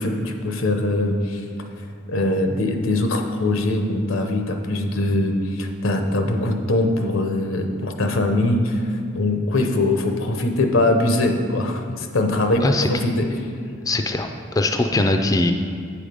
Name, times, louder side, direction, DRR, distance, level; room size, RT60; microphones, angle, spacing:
voice 1, 0.0-1.4 2.1-8.8 9.1-12.6 12.9-13.3, left 2 dB, 85° left, 4 dB, 0.8 m, -22 dB
voice 2, 13.9-14.3 14.5-15.5, left 2 dB, 20° left, 5 dB, 0.3 m, -20 dB
8.7 x 4.9 x 5.2 m, 2.3 s
head